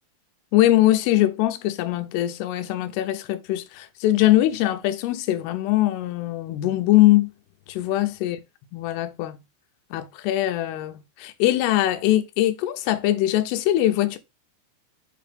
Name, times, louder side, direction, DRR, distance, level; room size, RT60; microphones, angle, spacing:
voice 1, 0.5-7.3 7.7-8.4 8.7-9.4 9.9-14.2, left 15 dB, 80° left, 2.8 m, -22 dB
7.4 x 3.1 x 5.1 m
omnidirectional pair, 4.8 m